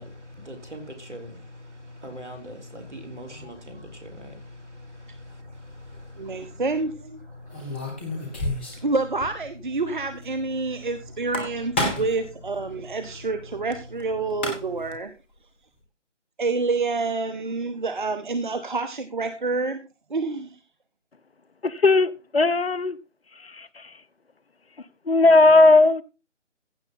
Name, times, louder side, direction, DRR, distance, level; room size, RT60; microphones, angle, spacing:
voice 1, 0.0-6.6 7.0-8.9 9.8-11.3 11.8-12.2 12.7-13.6 14.2-14.9, left 1 dB, 70° right, 3.8 m, -43 dB
sound 1, 5.7-6.0 7.5-8.9 9.2-9.3 9.6-9.7 11.1-12.2 14.0-14.1 14.3-14.9, left 2 dB, 10° left, 1.0 m, -29 dB
voice 2, 6.2-6.9 7.6-7.7 8.8-15.1 16.4-19.8 20.1-20.5, right 3 dB, 40° right, 0.9 m, -28 dB
voice 3, 21.6-23.0 23.4-24.0 25.1-26.0, left 2 dB, 55° left, 0.8 m, -17 dB
15.5 x 6.9 x 4.0 m
figure-of-eight pair, 155°, 36 cm